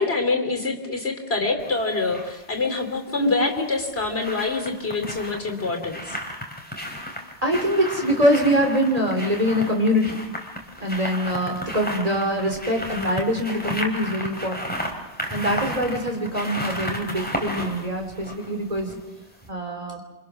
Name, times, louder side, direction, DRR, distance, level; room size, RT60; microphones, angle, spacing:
voice 1, 0.0-6.2, left 3 dB, 60° left, 6 dB, 3.2 m, -25 dB
sound 1, 1.6-2.3 3.6-19.1 19.4-19.5, equal, 10° left, 3.5 m, -33 dB
voice 2, 7.4-10.2 10.8-14.8 15.3-19.0 19.5-20.0, equal, 30° right, 2 dB, 3.5 m, -24 dB
28.5 x 25.0 x 6.2 m, 1.0 s
omnidirectional pair, 1.2 m